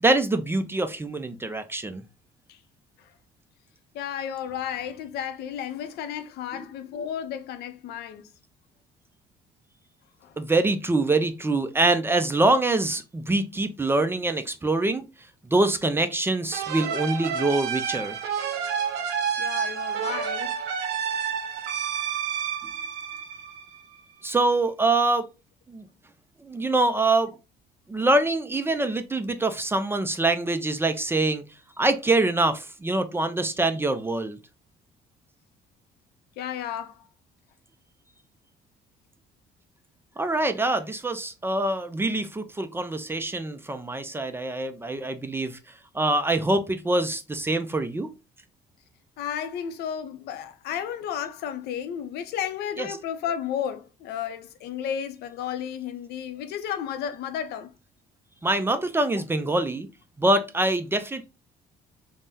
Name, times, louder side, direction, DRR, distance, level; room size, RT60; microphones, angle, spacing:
voice 1, 0.0-2.0 10.4-15.0 15.5-18.2 24.2-25.3 25.7-25.9 26.4-27.3 27.9-31.4 31.8-34.4 40.2-45.6 45.9-48.1 52.8-52.9 58.4-59.9 60.2-61.3, right 2 dB, 15° right, 0.3 m, -24 dB
voice 2, 3.9-8.2 10.2-10.4 19.4-20.6 36.4-37.1 49.2-57.7, left 9 dB, 75° left, 0.5 m, -33 dB
sound 1, 16.5-23.9, right 7 dB, 85° right, 0.6 m, -29 dB
3.4 x 2.1 x 2.7 m
cardioid pair, 110°, 17 cm